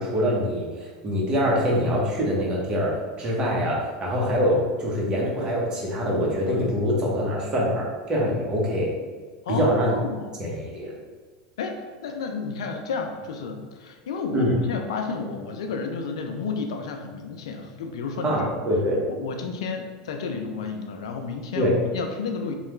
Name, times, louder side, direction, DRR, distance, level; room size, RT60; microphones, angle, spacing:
voice 1, 0.0-8.9 9.5-10.0 10.4-10.9 14.3-14.6 18.2-19.0 21.5-21.8, equal, 30° right, -3 dB, 1.0 m, -24 dB
voice 2, 9.5-10.3 11.6-18.5 19.1-22.5, left 4 dB, 85° left, 4 dB, 0.4 m, -31 dB
3.2 x 2.3 x 3.0 m, 1.5 s
supercardioid pair, 105°, 3 cm